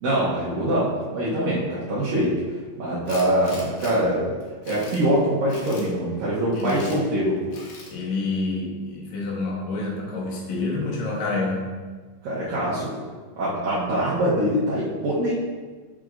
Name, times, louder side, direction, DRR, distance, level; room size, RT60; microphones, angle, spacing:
voice 1, 0.0-2.3 2.7-4.3 4.6-7.5 12.2-12.9 13.4-15.5, right 1 dB, 85° right, -9 dB, 1.9 m, -23 dB
Tools, 3.1-3.9 4.4-5.0 5.5-5.9 6.5-7.0 7.5-7.9, left 3 dB, 90° left, 1.9 m, -41 dB
voice 2, 6.5-7.0 7.9-11.7, left 3 dB, 70° left, -3 dB, 2.1 m, -28 dB
6.7 x 6.1 x 2.5 m, 1.4 s
omnidirectional pair, 5.4 m